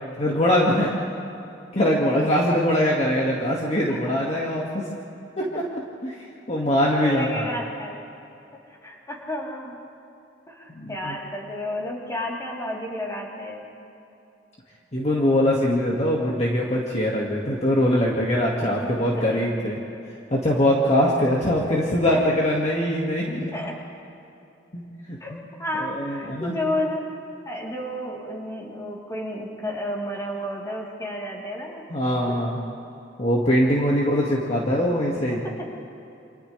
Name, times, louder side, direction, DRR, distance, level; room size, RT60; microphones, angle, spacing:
voice 1, 0.2-0.9 1.7-4.9 5.5-5.6 6.0-6.1 6.5-7.6 10.7-11.2 14.9-19.8 20.3-23.5 24.7-24.8 25.3-25.4 25.8-26.6 31.9-32.6 33.2-35.4, equal, 35° left, -4 dB, 2.0 m, -22 dB
voice 2, 6.9-8.0 8.8-9.8 10.5-13.6 18.8-19.4 22.1-22.2 23.5-23.8 25.2-25.3 25.6-27.0 27.5-31.8 32.3-32.4 35.4-35.7, left 1 dB, 20° left, -4 dB, 3.6 m, -31 dB
29.0 x 27.5 x 3.4 m, 2.8 s
head